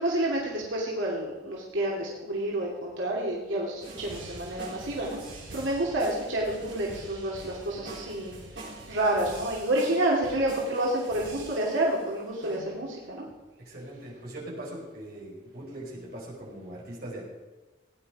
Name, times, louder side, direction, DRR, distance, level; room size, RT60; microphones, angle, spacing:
voice 1, 0.0-8.3 8.9-13.2, right 1 dB, 85° right, -4 dB, 2.9 m, -29 dB
sound 1, 3.8-12.0 12.4-12.6, right 2 dB, 65° right, 4.4 m, -44 dB
voice 2, 13.6-17.2, right 1 dB, 50° right, -4 dB, 5.0 m, -41 dB
18.0 x 10.0 x 4.9 m, 1.2 s
head